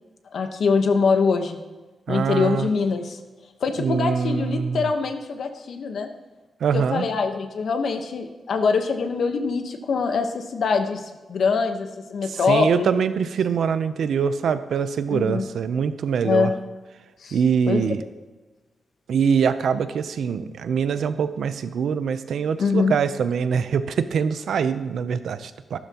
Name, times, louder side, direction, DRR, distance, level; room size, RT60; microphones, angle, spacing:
voice 1, 0.3-1.6 2.1-3.2 3.6-6.1 6.7-12.9 15.1-15.5 16.2-16.5 17.2-17.4 17.7-17.8 22.6-22.9, left 5 dB, 65° left, 6 dB, 1.1 m, -23 dB
voice 2, 2.1-2.7 3.8-4.9 6.6-7.1 12.3-16.5 17.3-18.0 19.1-25.8, right 6 dB, 80° right, 12 dB, 0.6 m, -23 dB
14.0 x 12.5 x 3.0 m, 1.2 s
wide cardioid pair, 160°, 0 cm